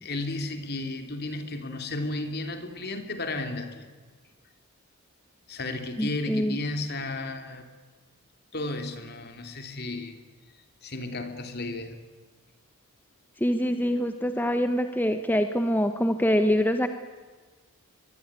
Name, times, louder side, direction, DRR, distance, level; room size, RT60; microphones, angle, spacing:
voice 1, 0.0-3.9 5.5-7.6 8.5-10.1 10.8-12.0, left 2 dB, 45° left, 6 dB, 3.4 m, -33 dB
voice 2, 6.0-6.6 13.4-16.9, equal, 10° left, 8 dB, 1.0 m, -25 dB
23.5 x 22.5 x 9.9 m, 1.4 s
head